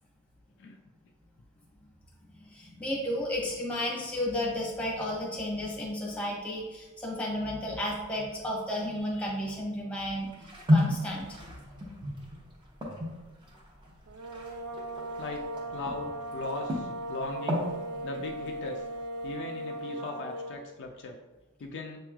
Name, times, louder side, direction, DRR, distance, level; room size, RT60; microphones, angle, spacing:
voice 1, 2.5-10.3 10.7-11.4 18.0-18.1, left 1 dB, 5° left, -3 dB, 0.9 m, -33 dB
sound 1, 10.0-16.1 16.4-17.7 18.1-18.9, left 1 dB, 20° right, 0.8 m, -32 dB
sound 2, 14.1-20.7, right 1 dB, 90° right, 0.4 m, -38 dB
voice 2, 15.2-17.7 18.0-18.8 19.2-21.2 21.6-22.0, left 3 dB, 55° left, 2 dB, 0.4 m, -39 dB
6.7 x 3.0 x 2.3 m, 1.1 s
head